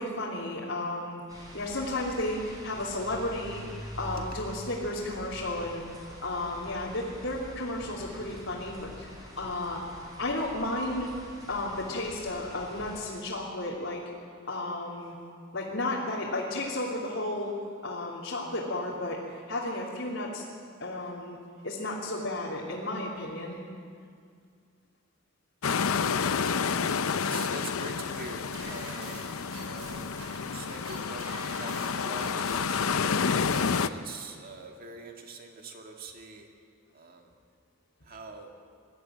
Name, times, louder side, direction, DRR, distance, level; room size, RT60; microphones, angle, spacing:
voice 1, 0.0-5.8 6.2-11.1 11.5-14.0 14.5-15.1 15.5-17.5 17.8-19.2 19.5-20.4 20.8-21.4 21.6-23.6, left 2 dB, 65° left, -6 dB, 3.0 m, -33 dB
sound 1, 1.3-13.2, equal, 20° right, 4.6 m, -45 dB
sound 2, 25.6-33.9, left 6 dB, 85° left, 0.7 m, -29 dB
voice 2, 27.1-29.2 29.6-30.1 30.5-32.9 33.5-36.5 36.9-37.4 38.0-38.5, right 3 dB, 45° right, 2 dB, 2.2 m, -44 dB
sound 3, 28.5-33.8, right 2 dB, 80° right, 5.9 m, -46 dB
21.5 x 13.5 x 9.1 m, 2.2 s
head